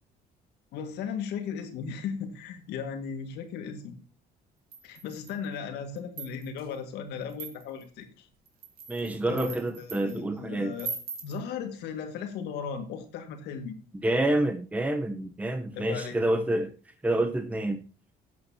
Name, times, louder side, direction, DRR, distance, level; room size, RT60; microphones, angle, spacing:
voice 1, 0.7-4.0 4.8-8.3 9.2-10.9 11.2-13.8 15.7-16.2, left 6 dB, 80° left, 1.9 m, -36 dB
sound 1, 4.7-5.5 6.0-6.7 7.3-7.9 8.5-10.2 10.8-11.4, right 5 dB, 65° right, 2.2 m, -40 dB
voice 2, 8.9-10.7 14.0-16.7 17.0-17.8, right 1 dB, 10° right, 0.9 m, -28 dB
13.5 x 8.2 x 2.8 m
cardioid pair, 110°, 17 cm